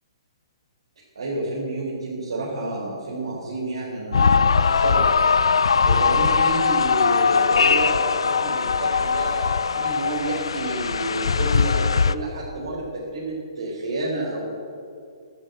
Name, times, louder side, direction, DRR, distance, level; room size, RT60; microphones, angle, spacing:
voice 1, 1.1-5.0 5.8-14.4, right 2 dB, 80° right, -6 dB, 4.6 m, -30 dB
sound 1, 4.1-12.2, left 5 dB, 85° left, 0.6 m, -20 dB
12.5 x 12.5 x 8.1 m, 2.4 s
hypercardioid pair, 135°, 3 cm